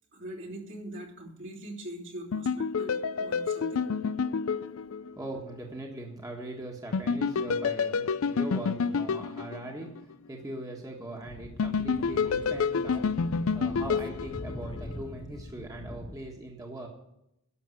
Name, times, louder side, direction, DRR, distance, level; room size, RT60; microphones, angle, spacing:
voice 1, 0.1-3.8, right 1 dB, 60° right, -3 dB, 3.1 m, -42 dB
sound 1, 2.3-5.4 6.9-10.1 11.6-15.0, left 5 dB, 70° left, 0.5 m, -29 dB
voice 2, 5.1-16.9, right 1 dB, 15° right, 0 dB, 1.5 m, -41 dB
Speech / Wind, 11.2-16.2, left 2 dB, 25° left, 0.6 m, -43 dB
11.0 x 7.0 x 7.9 m, 0.81 s
head